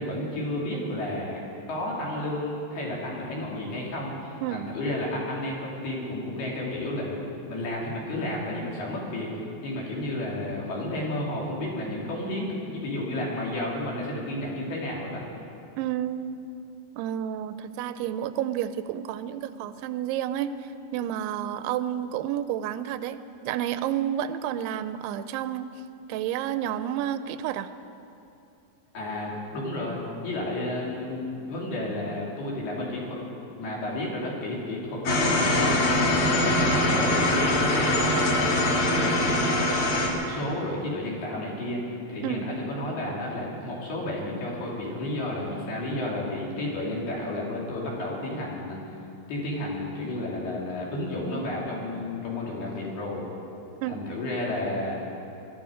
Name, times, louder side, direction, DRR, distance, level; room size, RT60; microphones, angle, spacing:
voice 1, 0.0-1.4 1.7-7.2 7.5-9.3 9.6-15.2 28.9-33.2 33.6-41.8 42.1-48.8 49.3-53.3 53.9-55.0, left 1 dB, 70° left, -4 dB, 4.7 m, -32 dB
voice 2, 15.8-16.4 17.0-20.5 20.9-25.7 26.1-27.7 42.2-42.5 53.8-54.1, right 11 dB, 90° right, 12 dB, 2.7 m, -30 dB
sound 1, 35.0-40.1, left 1 dB, 50° left, 1.7 m, -23 dB
21.5 x 12.5 x 5.1 m, 2.8 s
omnidirectional pair, 4.7 m